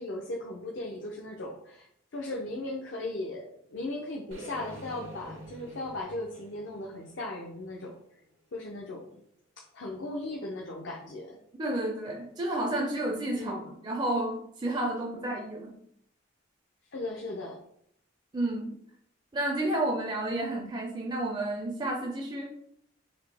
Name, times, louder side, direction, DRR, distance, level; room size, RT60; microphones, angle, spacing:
voice 1, 0.0-1.9 2.1-8.0 8.5-9.1 9.6-11.4 13.3-13.6 16.9-17.6, left 2 dB, 70° left, -1 dB, 0.6 m, -37 dB
sound 1, 4.3-8.4, right 1 dB, 85° right, 0.9 m, -47 dB
voice 2, 11.6-15.7 18.3-18.7 19.3-22.5, right 1 dB, 20° right, 0 dB, 0.4 m, -31 dB
4.0 x 2.8 x 3.3 m, 0.69 s
head